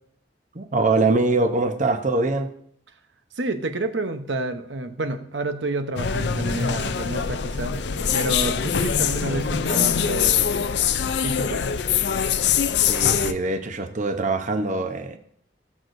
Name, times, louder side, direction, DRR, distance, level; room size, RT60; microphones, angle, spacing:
voice 1, 0.5-2.5 12.9-15.2, right 3 dB, 45° right, 0.8 m, -23 dB
voice 2, 3.4-7.8 8.1-10.8 11.2-11.6, right 2 dB, 80° right, 0.9 m, -29 dB
sound 1, 6.0-13.3, left 7 dB, 65° left, 0.5 m, -23 dB
18.0 x 6.5 x 2.6 m
head